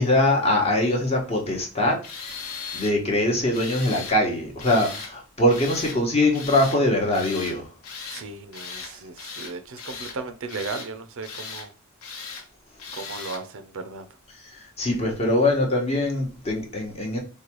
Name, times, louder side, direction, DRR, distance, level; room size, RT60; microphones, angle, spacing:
voice 1, 0.0-2.0 2.7-7.7 8.8-8.9 14.3-17.2, left 1 dB, 30° left, 0.9 m, -22 dB
Tools, 2.0-2.9 3.5-4.2 4.6-5.1 5.5-6.0 6.3-6.8 7.1-7.6 7.8-8.2 8.5-8.9 9.2-10.2 10.5-10.9 11.2-11.7 12.0-12.4 12.8-13.4, left 5 dB, 80° left, 0.9 m, -37 dB
voice 2, 8.1-11.7 12.9-14.1, right 4 dB, 60° right, 0.5 m, -36 dB
4.6 x 2.2 x 2.9 m
head